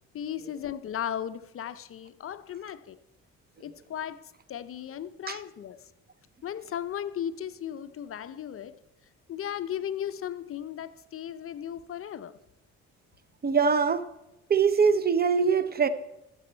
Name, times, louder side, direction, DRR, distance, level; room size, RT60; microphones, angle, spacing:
voice 1, 0.1-3.0 3.6-5.9 6.4-8.8 9.3-12.3, left 9 dB, 45° left, 0.5 m, -36 dB
voice 2, 13.4-14.1 14.5-15.9, right 6 dB, 30° right, 0.6 m, -23 dB
14.0 x 6.8 x 4.4 m
cardioid pair, 90°, 30 cm